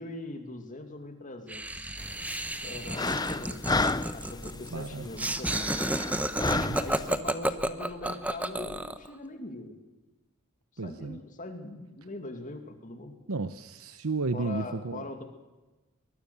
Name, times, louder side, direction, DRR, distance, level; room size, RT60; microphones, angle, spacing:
voice 1, 0.0-2.0 2.6-3.7 4.1-5.8 6.7-9.8 10.8-13.2 14.3-15.2, left 2 dB, 40° left, 6 dB, 2.5 m, -41 dB
Laughter, 1.5-9.1, right 1 dB, 5° right, 1.0 m, -32 dB
sound 1, 2.0-7.2, left 3 dB, 20° left, 0.7 m, -32 dB
voice 2, 4.7-5.0 6.5-6.8 10.8-11.2 13.3-15.0, right 3 dB, 85° right, 11 dB, 0.9 m, -33 dB
23.0 x 20.5 x 6.9 m, 1.1 s
head